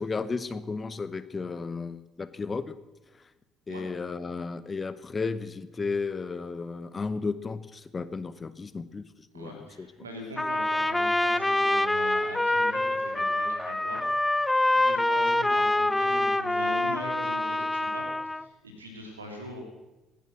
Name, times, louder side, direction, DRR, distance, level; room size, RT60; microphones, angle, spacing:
voice 1, 0.0-2.7 3.1-3.3 3.7-9.1 9.3-9.9, left 4 dB, 30° left, 14 dB, 1.0 m, -34 dB
voice 2, 9.3-14.0 14.3-14.5 14.7-19.6, equal, 85° right, 3 dB, 3.1 m, -41 dB
Trumpet, 10.4-18.4, left 1 dB, 10° left, 0.5 m, -26 dB
17.0 x 11.0 x 6.2 m, 1.0 s
figure-of-eight pair, 50°, 0 cm